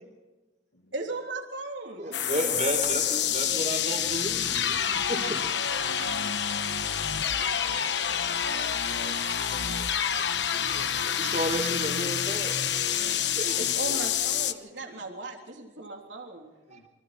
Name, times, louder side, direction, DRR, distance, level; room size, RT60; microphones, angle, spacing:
voice 1, 0.9-2.8 4.1-4.2 13.6-16.5, right 2 dB, 85° right, 3.5 m, -37 dB
voice 2, 2.0-5.4 10.8-10.9 11.1-12.6 12.9-13.6 16.7-16.8, right 1 dB, 40° right, 4.5 m, -33 dB
sound 1, 2.1-14.5, left 9 dB, 70° left, 1.2 m, -28 dB
voice 3, 3.1-3.9 5.7-6.4 7.1-9.2 9.5-11.3 13.4-14.1 14.8-15.0 16.7-16.9, left 2 dB, 90° left, 1.9 m, -48 dB
28.0 x 25.5 x 4.4 m
head